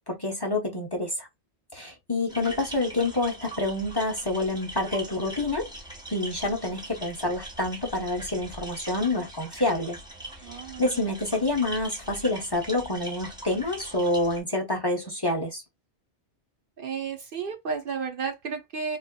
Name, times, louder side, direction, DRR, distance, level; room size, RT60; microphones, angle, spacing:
voice 1, 0.1-1.3 1.7-5.7 6.1-10.0 10.8-15.6, left 2 dB, 25° left, 0.8 m, -27 dB
sound 1, 2.3-14.4, right 1 dB, 5° right, 0.9 m, -42 dB
voice 2, 10.4-11.0 16.8-19.0, right 5 dB, 60° right, 0.8 m, -33 dB
4.0 x 2.5 x 2.2 m
omnidirectional pair, 1.1 m